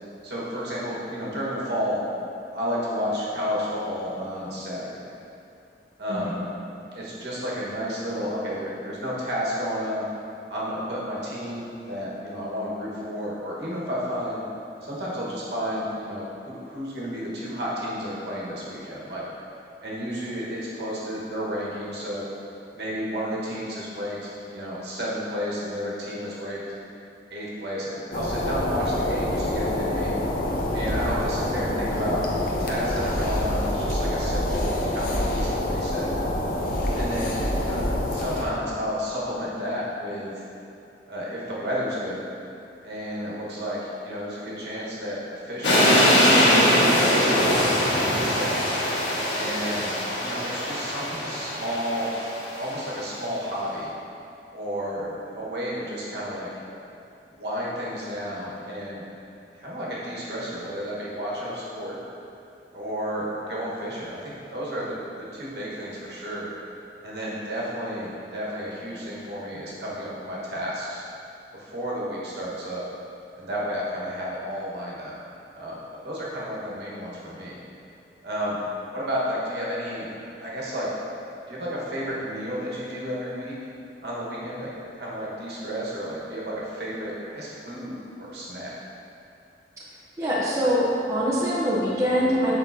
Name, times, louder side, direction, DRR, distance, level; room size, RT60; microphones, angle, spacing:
voice 1, 0.2-2.0 2.5-5.1 6.0-6.4 6.9-10.0 10.5-14.4 14.8-19.2 19.8-22.2 22.7-26.6 27.3-30.2 30.7-36.1 36.9-37.4 37.6-37.8 38.1-40.4 41.1-42.2 42.8-48.6 49.3-52.1 52.5-53.9 54.5-56.5 57.3-59.0 59.5-61.9 62.7-66.5 67.0-71.0 71.5-72.8 73.4-75.2 75.5-75.8 76.0-77.6 78.2-78.6 78.9-80.9 81.5-83.5 84.0-88.7, equal, 65° right, -6 dB, 1.3 m, -32 dB
sound 1, 28.1-38.4, left 1 dB, 50° left, 0.7 m, -26 dB
sound 2, 45.6-52.7, equal, 85° left, 1.3 m, -22 dB
voice 2, 90.2-92.6, equal, 15° right, -7 dB, 0.7 m, -23 dB
7.3 x 5.2 x 2.7 m, 2.7 s
head